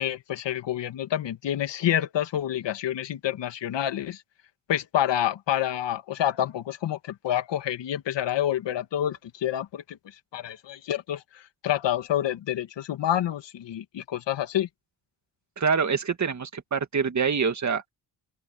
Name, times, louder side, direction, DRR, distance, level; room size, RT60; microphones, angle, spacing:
voice 1, 0.0-4.2 4.7-10.0 10.3-14.7, left 11 dB, 80° left, 2.1 m, -28 dB
voice 2, 15.6-17.9, right 6 dB, 40° right, 2.2 m, -25 dB
open air
cardioid pair, 110°, 42 cm